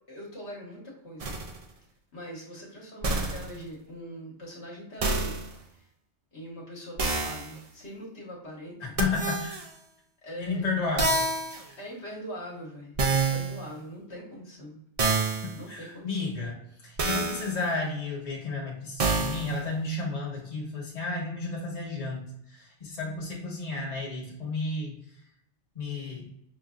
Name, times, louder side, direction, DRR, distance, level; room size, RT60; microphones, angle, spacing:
voice 1, 0.1-1.4 2.1-5.4 5.7-5.9 6.3-9.0 10.2-10.7 11.8-14.8 15.6-16.4, equal, 65° left, -3 dB, 1.4 m, -42 dB
sound 1, 1.2-1.6 3.0-3.6 5.0-5.5 7.0-7.6 9.0-9.7 11.0-11.7 13.0-13.6 15.0-15.6 17.0-17.6 19.0-19.6, right 3 dB, 50° right, 0.4 m, -27 dB
voice 2, 9.0-9.6 10.4-11.3 11.7-11.8 15.7-25.0 25.7-26.3, left 3 dB, 40° left, -3 dB, 1.2 m, -32 dB
5.9 x 2.6 x 2.4 m, 0.75 s
omnidirectional pair, 1.2 m